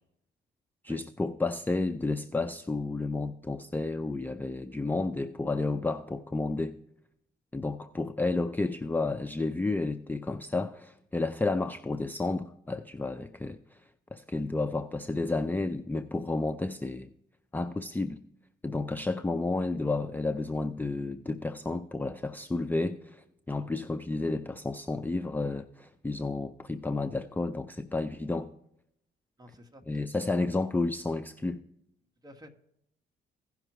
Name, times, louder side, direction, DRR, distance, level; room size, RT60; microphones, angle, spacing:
voice 1, 0.8-6.8 7.5-13.8 14.1-17.1 17.5-18.2 18.6-28.5 29.9-31.6, left 3 dB, 10° left, 9 dB, 0.4 m, -31 dB
voice 2, 29.4-30.1 32.2-32.5, equal, 20° right, 5 dB, 1.3 m, -52 dB
16.0 x 5.8 x 3.0 m, 0.76 s
cardioid pair, 90°, 20 cm